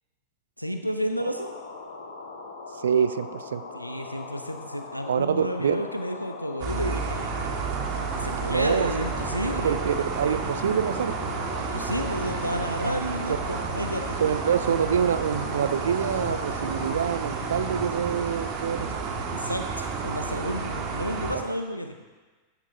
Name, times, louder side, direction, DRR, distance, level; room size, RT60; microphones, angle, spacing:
voice 1, 0.6-1.5 3.7-7.5 8.1-9.9 11.7-14.2 19.3-22.0, equal, 90° left, 6 dB, 0.6 m, -31 dB
sound 1, 1.3-17.0, left 3 dB, 70° left, 1.7 m, -40 dB
voice 2, 2.8-3.6 5.1-5.7 8.5-8.9 9.6-11.4 14.2-19.0 21.3-21.4, right 8 dB, 65° right, 13 dB, 0.5 m, -26 dB
sound 2, 6.6-21.3, right 4 dB, 40° right, 1.8 m, -31 dB
15.0 x 12.0 x 2.7 m, 1.3 s
figure-of-eight pair, 90°, 0 cm